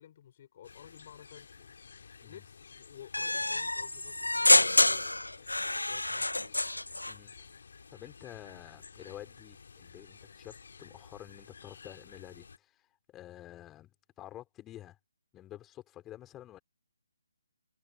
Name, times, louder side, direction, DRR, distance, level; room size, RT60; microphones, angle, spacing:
voice 1, 0.0-6.6, left 10 dB, 35° left, 4.0 m, -54 dB
sound 1, 0.6-12.6, left 5 dB, 50° left, 3.3 m, -53 dB
sound 2, 3.1-7.2, left 2 dB, 75° left, 0.3 m, -27 dB
voice 2, 7.1-7.5 7.9-13.9 14.2-15.0 15.3-16.6, left 13 dB, 10° left, 4.9 m, -49 dB
figure-of-eight pair, 145°, 0 cm